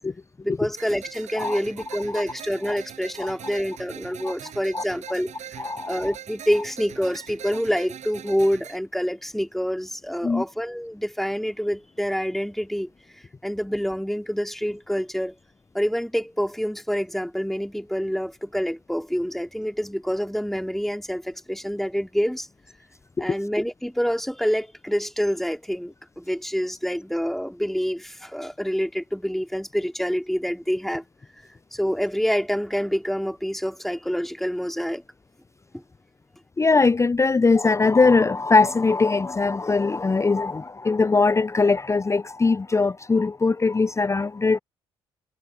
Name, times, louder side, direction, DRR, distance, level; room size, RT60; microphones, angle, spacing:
voice 1, 0.4-5.3 5.9-12.9 13.4-15.4 15.7-22.5 23.2-31.0 31.7-35.0 35.7-35.8, equal, ahead, 4.0 m, -27 dB
sound 1, 0.8-8.8, right 9 dB, 60° right, 6.5 m, -42 dB
voice 2, 5.6-6.1 10.2-10.4 36.6-44.6, left 4 dB, 20° left, 0.5 m, -21 dB
hypercardioid pair, 40°, 14 cm